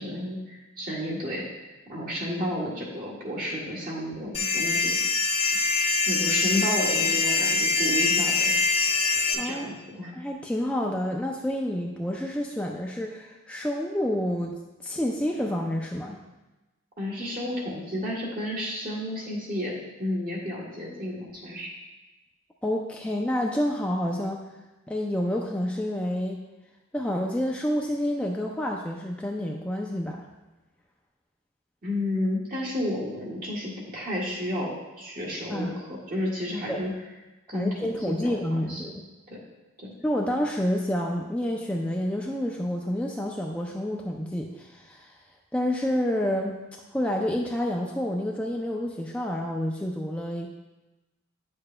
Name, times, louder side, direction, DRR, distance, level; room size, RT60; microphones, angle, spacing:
voice 1, 0.0-1.6 1.9-5.0 6.1-8.5 9.3-10.1 17.0-19.7 20.0-21.7 31.8-36.9 37.5-38.3 38.6-38.8 39.3-39.4 39.8-39.9, left 1 dB, 45° right, -5 dB, 1.8 m, -31 dB
sound 1, 4.3-9.3, left 4 dB, 30° left, 0.8 m, -24 dB
voice 2, 9.4-9.7 10.2-14.6 14.8-16.2 22.6-24.4 24.9-26.4 26.9-30.2 35.5-35.7 36.7-36.9 37.5-39.0 40.0-45.2 45.5-46.6 46.9-50.5, left 1 dB, 5° left, -1 dB, 0.3 m, -28 dB
9.5 x 6.7 x 2.2 m, 1.1 s
head